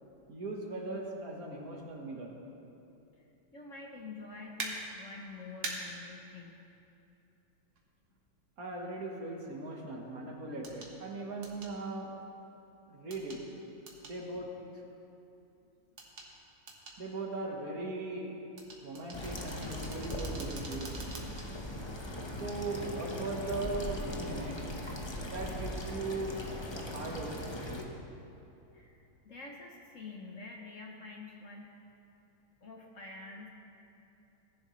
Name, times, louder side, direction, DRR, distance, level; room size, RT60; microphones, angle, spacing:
voice 1, 0.3-2.4 8.6-12.1 12.9-13.4 14.0-14.8 17.0-18.3 18.8-21.0 22.3-24.7 25.3-27.3, right 2 dB, 50° right, -1 dB, 1.8 m, -39 dB
voice 2, 3.1-6.6 13.7-13.9 28.7-31.9 32.6-33.5, left 3 dB, 50° left, -1 dB, 1.2 m, -47 dB
sound 1, 4.6-4.7 5.6-5.8 7.8-7.9 10.6-10.9 11.4-11.7 13.1-13.4 13.9-14.2 16.0-16.3 16.7-17.0 18.6-21.5 21.9-22.0, right 4 dB, 70° right, 2.1 m, -43 dB
sound 2, 19.1-27.8, left 1 dB, 25° left, 0.6 m, -39 dB
19.0 x 10.5 x 3.2 m, 2.8 s
omnidirectional pair, 2.1 m